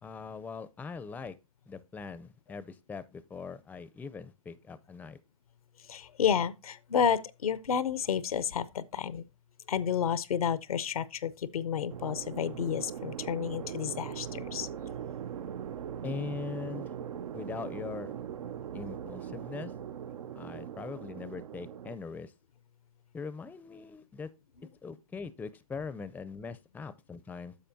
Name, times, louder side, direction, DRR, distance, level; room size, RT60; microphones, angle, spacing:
voice 1, 0.0-1.4 1.7-5.2 16.0-16.9 17.3-18.1 18.7-19.7 20.4-22.3 23.1-24.3 24.8-27.5, left 5 dB, 10° left, 0.4 m, -41 dB
voice 2, 5.9-9.2 9.7-14.7, left 8 dB, 90° left, 0.6 m, -30 dB
sound 1, 11.9-22.0, right 9 dB, 85° right, 0.5 m, -40 dB
10.0 x 6.7 x 2.6 m
hypercardioid pair, 120°, 18 cm